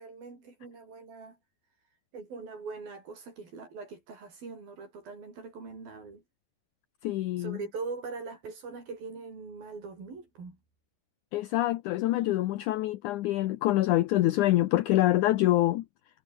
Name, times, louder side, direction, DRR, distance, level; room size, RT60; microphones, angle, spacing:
voice 1, 0.0-1.4 2.1-6.2 7.4-10.6, right 4 dB, 80° right, 9.0 m, -42 dB
voice 2, 7.0-7.6 11.3-15.8, left 15 dB, 75° left, 2.1 m, -25 dB
omnidirectional pair, 4.1 m